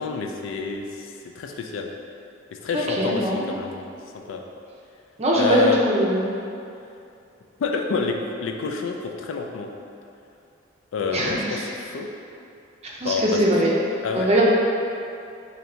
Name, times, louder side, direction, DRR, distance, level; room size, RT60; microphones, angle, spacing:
voice 1, 0.0-1.9 2.6-3.8 4.3-4.4 5.3-5.8 7.6-9.7 10.9-12.1 13.0-13.4 14.0-14.3, left 5 dB, 80° left, 3 dB, 0.3 m, -27 dB
voice 2, 2.7-3.5 5.2-6.3 11.1-11.6 13.0-13.8 14.1-14.4, right 1 dB, 35° right, -4 dB, 0.5 m, -21 dB
2.7 x 2.6 x 4.2 m, 2.6 s
head